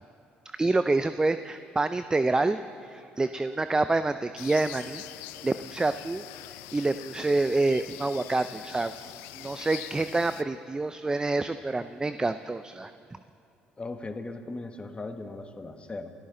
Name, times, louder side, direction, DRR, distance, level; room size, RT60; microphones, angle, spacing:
voice 1, 0.4-5.0 5.4-6.2 6.7-13.2, right 2 dB, 20° right, 11 dB, 0.5 m, -27 dB
sound 1, 4.4-10.4, left 15 dB, 80° left, 0.5 m, -43 dB
voice 2, 13.8-16.1, left 2 dB, 25° left, 7 dB, 1.4 m, -38 dB
27.0 x 13.5 x 3.9 m, 2.5 s
hypercardioid pair, 60°, 4 cm